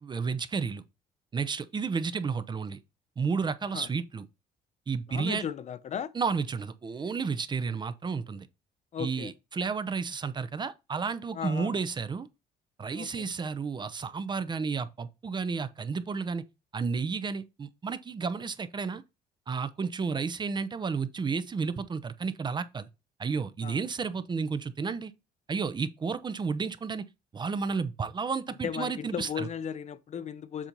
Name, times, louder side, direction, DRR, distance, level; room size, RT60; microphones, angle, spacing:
voice 1, 0.0-0.8 1.3-2.8 3.2-4.2 4.9-5.4 6.1-8.5 9.0-12.3 12.8-16.4 16.7-19.0 19.5-22.9 23.2-25.1 25.5-27.0 27.3-29.5, right 5 dB, 25° right, 0.6 m, -32 dB
voice 2, 5.1-6.1 8.9-9.3 11.3-11.8 12.9-13.3 23.6-23.8 28.6-30.7, left 8 dB, 45° left, 0.6 m, -36 dB
7.3 x 2.8 x 5.2 m
cardioid pair, 110°, 17 cm